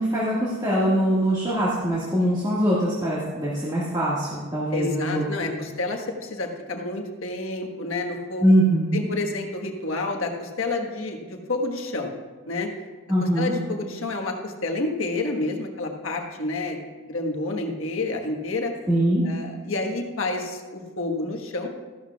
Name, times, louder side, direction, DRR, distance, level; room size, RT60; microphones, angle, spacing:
voice 1, 0.0-5.5 8.4-9.0 13.1-13.5 18.9-19.2, right 1 dB, 20° right, -8 dB, 1.8 m, -22 dB
voice 2, 4.7-8.5 8.9-12.1 12.5-12.7 13.2-18.7 19.2-21.7, left 2 dB, 75° left, 2 dB, 1.4 m, -29 dB
14.5 x 12.0 x 2.4 m, 1.4 s
head